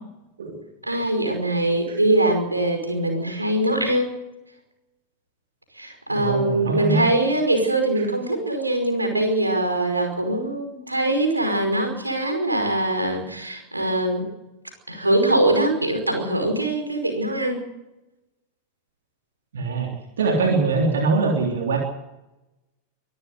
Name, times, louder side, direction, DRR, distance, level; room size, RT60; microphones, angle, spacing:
voice 1, 0.8-4.1 5.7-14.2 14.9-17.6, right 1 dB, 85° right, 5 dB, 5.2 m, -22 dB
voice 2, 6.1-7.1 19.5-19.9 20.2-21.8, right 3 dB, 65° right, 1 dB, 3.5 m, -22 dB
24.5 x 14.0 x 8.0 m, 0.98 s
figure-of-eight pair, 90°, 0 cm